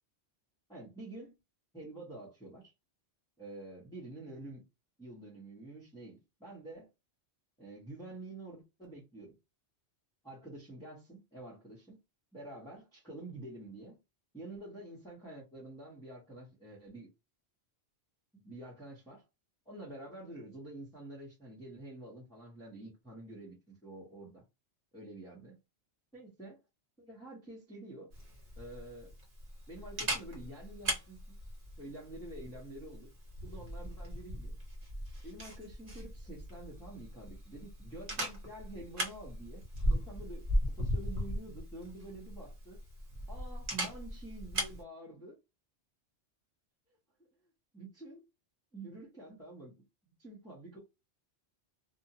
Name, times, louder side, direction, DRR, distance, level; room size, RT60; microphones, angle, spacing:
voice 1, 0.7-1.4 1.7-2.7 3.4-4.6 5.0-6.9 7.6-9.3 10.2-12.0 12.3-14.0 14.3-17.1 18.3-19.3 19.7-24.4 24.9-25.6 26.1-26.6 27.0-28.1 28.6-29.1 29.7-31.3 31.8-33.1 33.4-34.5 35.2-39.6 39.9-42.8 43.3-45.3 47.7-48.2 48.7-50.8, right 2 dB, 5° left, 0.8 m, -48 dB
Camera, 28.1-44.8, equal, 50° right, 1.1 m, -38 dB
2.4 x 2.1 x 2.8 m
omnidirectional pair, 1.2 m